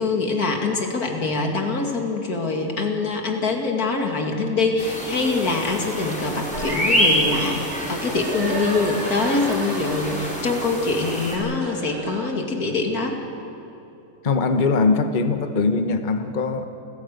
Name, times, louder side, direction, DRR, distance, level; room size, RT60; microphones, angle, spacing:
voice 1, 0.0-13.2, left 3 dB, 75° left, 2 dB, 2.9 m, -24 dB
sound 1, 4.8-11.4, equal, 5° left, 5.0 m, -27 dB
sound 2, 6.5-12.3, right 2 dB, 70° right, 3.0 m, -34 dB
voice 2, 14.2-16.7, left 4 dB, 35° left, 8 dB, 1.0 m, -21 dB
29.0 x 15.0 x 8.0 m, 2.9 s
omnidirectional pair, 1.6 m